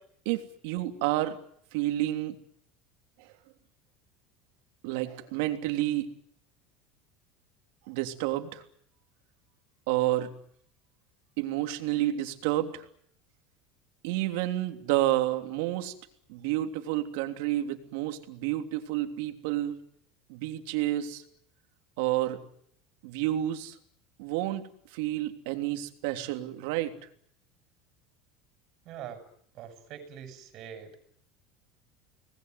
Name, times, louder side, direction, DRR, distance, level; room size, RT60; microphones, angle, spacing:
voice 1, 0.2-1.4 1.7-2.4 3.2-3.3 4.8-6.1 7.9-8.6 9.9-10.3 11.4-12.9 14.0-15.9 16.3-19.8 20.3-21.2 22.0-22.4 23.0-23.8 24.2-24.6 24.9-26.9, right 14 dB, 75° right, 6 dB, 3.2 m, -30 dB
voice 2, 28.8-29.2 29.5-31.0, right 9 dB, 45° right, 8 dB, 7.1 m, -43 dB
25.5 x 20.0 x 9.5 m, 0.65 s
cardioid pair, 150°, 0 cm